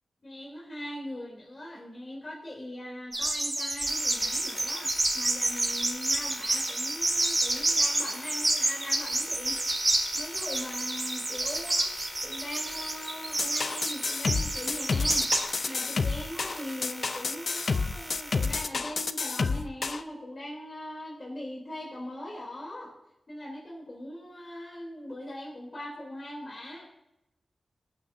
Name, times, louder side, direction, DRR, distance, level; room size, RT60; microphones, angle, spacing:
voice 1, 0.2-9.6 10.1-15.3 15.6-22.9 23.3-26.9, left 1 dB, 40° left, -4 dB, 3.2 m, -41 dB
sound 1, 3.1-15.4, right 2 dB, 25° right, 3.2 m, -28 dB
sound 2, 3.8-18.6, equal, 15° left, 3.5 m, -42 dB
sound 3, 13.4-20.0, left 4 dB, 65° left, 0.6 m, -29 dB
24.5 x 9.0 x 2.7 m, 0.90 s
wide cardioid pair, 75°, 0 cm